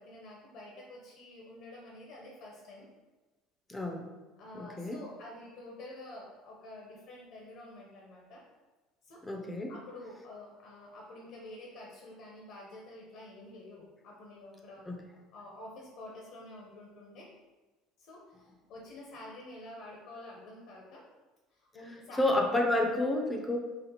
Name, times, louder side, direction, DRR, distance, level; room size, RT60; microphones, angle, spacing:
voice 1, 0.0-2.9 4.4-8.4 9.0-9.2 9.7-14.9 15.3-17.3 18.0-21.0 21.5-22.2, left 1 dB, 70° left, -2 dB, 0.8 m, -48 dB
voice 2, 3.7-4.1 4.5-5.0 9.2-9.7 14.9-15.0 22.2-23.6, left 1 dB, 15° left, 1 dB, 0.5 m, -30 dB
4.1 x 2.4 x 2.8 m, 1.2 s
supercardioid pair, 105°, 0 cm